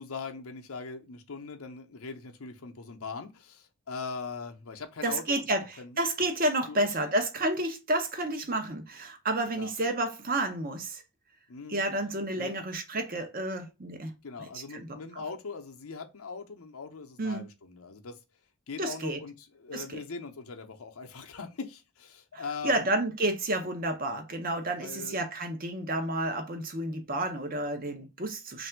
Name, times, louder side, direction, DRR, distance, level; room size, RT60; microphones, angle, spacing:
voice 1, 0.0-5.5 5.8-6.0 6.7-7.1 9.5-9.7 11.5-11.8 12.4-12.6 14.2-18.2 18.7-22.9 24.8-25.2, left 4 dB, 75° left, 0.7 m, -41 dB
voice 2, 5.0-11.0 11.7-14.1 14.4-15.2 17.2-17.5 18.8-19.2 19.7-20.0 22.3-28.7, right 1 dB, 40° right, 0.7 m, -31 dB
3.3 x 2.6 x 4.4 m
head